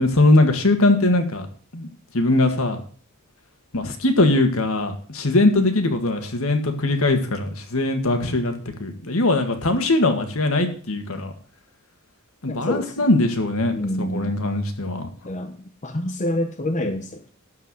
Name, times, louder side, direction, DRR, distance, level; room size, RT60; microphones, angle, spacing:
voice 1, 0.0-1.5 1.7-1.9 2.1-2.8 3.7-11.3 12.4-13.7 14.1-15.1, left 2 dB, 70° left, 6 dB, 1.9 m, -20 dB
voice 2, 12.5-13.1 13.7-14.3 15.2-15.6 15.8-17.3, left 1 dB, 35° left, 5 dB, 1.0 m, -27 dB
12.5 x 4.8 x 7.6 m, 0.44 s
head